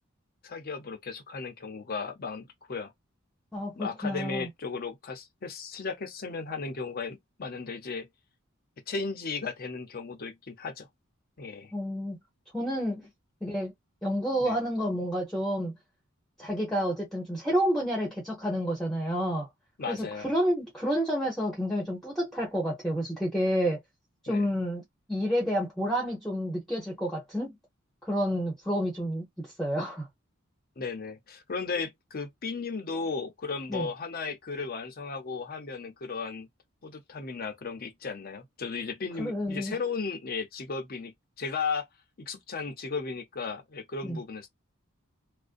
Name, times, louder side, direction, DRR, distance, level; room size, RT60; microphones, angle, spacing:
voice 1, 0.4-2.9 3.8-8.1 8.9-10.9 11.4-11.7 14.4-14.5 19.8-20.3 24.3-24.5 30.8-36.5 36.8-41.9 42.2-44.5, left 4 dB, 45° left, 0.6 m, -35 dB
voice 2, 3.5-4.5 11.7-12.2 12.5-13.1 13.4-13.7 14.0-15.7 16.4-19.5 19.9-23.8 24.2-24.8 25.1-27.6 28.0-30.1 33.7-33.9 39.2-39.8 44.0-44.2, equal, ahead, 0.8 m, -29 dB
2.5 x 2.1 x 2.5 m
head